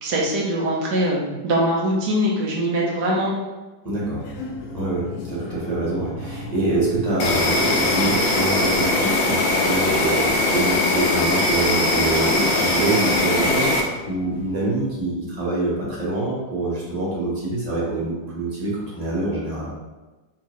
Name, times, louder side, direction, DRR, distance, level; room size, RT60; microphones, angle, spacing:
voice 1, 0.0-3.3, equal, 70° right, -3 dB, 1.4 m, -22 dB
voice 2, 3.8-4.3 4.7-19.7, right 2 dB, 25° right, -6 dB, 1.1 m, -25 dB
sound 1, 3.9-15.0, left 2 dB, 70° left, 0.9 m, -37 dB
Insect, 7.2-13.8, left 2 dB, 85° left, 1.4 m, -20 dB
4.5 x 2.9 x 3.1 m, 1.2 s
omnidirectional pair, 2.0 m